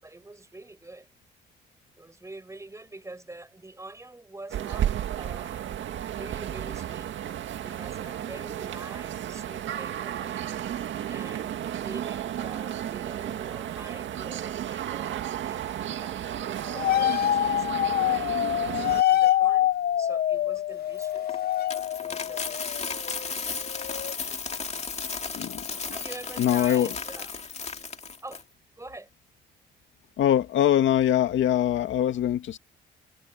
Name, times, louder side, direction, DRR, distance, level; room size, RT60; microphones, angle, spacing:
voice 1, 0.0-1.1 2.0-5.8 6.1-7.1 7.6-10.4 11.1-16.2 16.6-18.5 19.1-21.4 22.0-22.9 25.9-27.3 28.2-28.4 28.8-29.1, right 2 dB, 15° right, 5.5 m, -45 dB
sound 1, 4.5-19.0, right 10 dB, 70° right, 2.0 m, -33 dB
sound 2, 16.8-23.3 23.6-24.1, left 12 dB, 50° left, 0.5 m, -25 dB
Coin (dropping), 21.0-28.4, left 5 dB, 35° left, 2.2 m, -35 dB
voice 2, 25.3-25.8 26.4-26.9 30.2-32.6, left 11 dB, 75° left, 2.2 m, -23 dB
cardioid pair, 90°, 20 cm